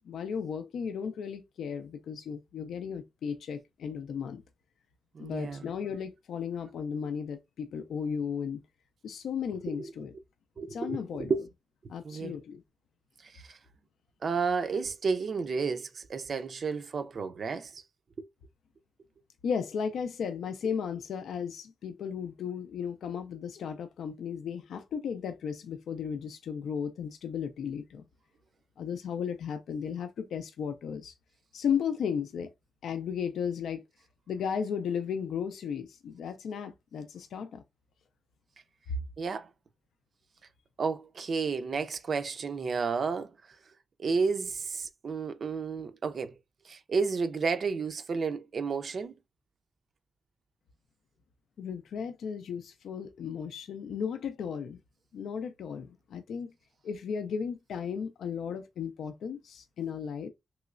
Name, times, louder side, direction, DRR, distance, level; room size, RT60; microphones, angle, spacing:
voice 1, 0.0-4.4 5.2-8.6 9.0-10.1 10.7-11.3 11.9-12.6 19.4-28.0 28.8-31.1 31.5-32.5 32.8-33.8 34.3-37.6 38.9-39.0 51.6-54.8 55.1-56.5 56.8-60.3, left 7 dB, 85° left, 0.4 m, -35 dB
voice 2, 5.1-5.6 9.7-9.9 10.6-11.5 12.0-12.3 13.2-13.6 14.2-17.8 18.2-18.3 39.2-39.5 40.8-43.6 44.0-46.4 46.6-49.1, right 5 dB, 55° right, 0.4 m, -32 dB
3.1 x 3.0 x 2.4 m
cardioid pair, 95°, 0 cm